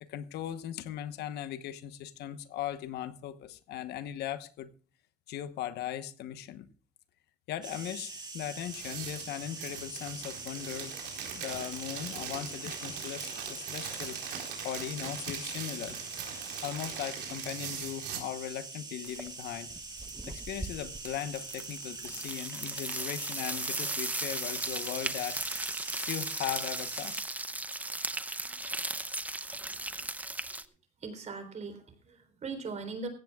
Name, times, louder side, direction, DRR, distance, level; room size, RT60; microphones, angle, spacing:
voice 1, 0.0-4.7 5.3-6.7 7.5-10.9 11.3-16.0 16.3-19.7 20.3-25.4 26.0-27.2, left 11 dB, 75° left, 12 dB, 1.0 m, -38 dB
sound 1, 7.6-27.2, right 3 dB, 25° right, 5.4 m, -43 dB
sound 2, 8.6-18.2, right 8 dB, 80° right, 4.2 m, -41 dB
sound 3, 19.0-19.4 19.7-30.6, right 2 dB, 10° right, 0.7 m, -37 dB
voice 2, 31.0-33.1, right 4 dB, 45° right, 9 dB, 3.5 m, -40 dB
17.5 x 15.5 x 2.3 m, 0.39 s
cardioid pair, 110°, 17 cm